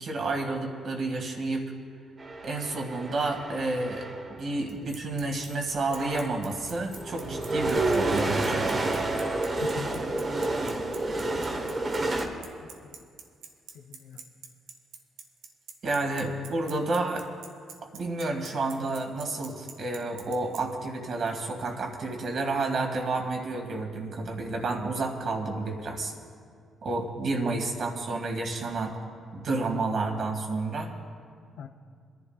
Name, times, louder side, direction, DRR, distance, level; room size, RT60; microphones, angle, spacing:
voice 1, 0.0-1.7 2.4-9.0 15.8-17.2 17.9-26.1 26.8-28.9 29.3-30.9, right 3 dB, 55° right, 3 dB, 2.0 m, -30 dB
sound 1, 2.2-4.4 5.3-5.4 5.8-12.2, right 2 dB, 35° right, 1.5 m, -30 dB
Bicycle, 4.7-20.6, right 7 dB, 90° right, 1.1 m, -44 dB
sound 2, 4.9-5.1 5.4-6.3 6.6-9.9, left 4 dB, 40° left, 2.2 m, -54 dB
voice 2, 9.6-10.8 11.6-11.8 12.6-13.0 13.7-14.2 31.6-31.7, left 6 dB, 75° left, 6 dB, 0.7 m, -43 dB
26.5 x 11.0 x 2.4 m, 2.2 s
cardioid pair, 90°, 0 cm